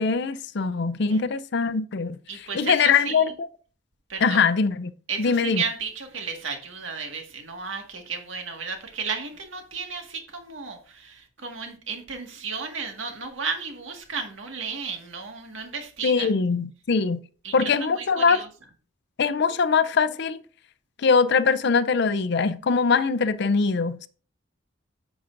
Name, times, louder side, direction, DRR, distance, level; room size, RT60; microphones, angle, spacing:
voice 1, 0.0-3.5 4.2-4.9 5.2-5.6 16.0-17.2 17.5-18.4 19.2-20.4 21.0-24.1, left 5 dB, 60° left, 0.5 m, -22 dB
voice 2, 2.3-3.2 4.1-4.4 5.1-16.3 17.4-18.5, right 5 dB, 75° right, 1.8 m, -33 dB
9.6 x 7.1 x 2.5 m
head